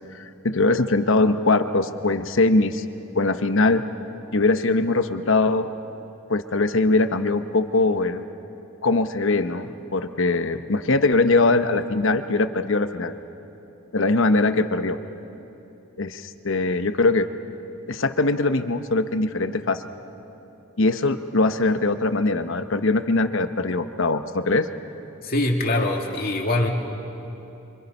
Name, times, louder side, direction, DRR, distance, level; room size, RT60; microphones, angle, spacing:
voice 1, 0.1-2.8 3.1-3.8 4.3-5.7 6.3-8.2 8.8-13.1 13.9-15.0 16.0-17.3 17.9-19.8 20.8-24.7, left 3 dB, 60° left, 9 dB, 1.0 m, -21 dB
voice 2, 25.2-26.7, left 1 dB, 45° left, 1 dB, 2.4 m, -23 dB
29.0 x 25.0 x 5.5 m, 2.9 s
head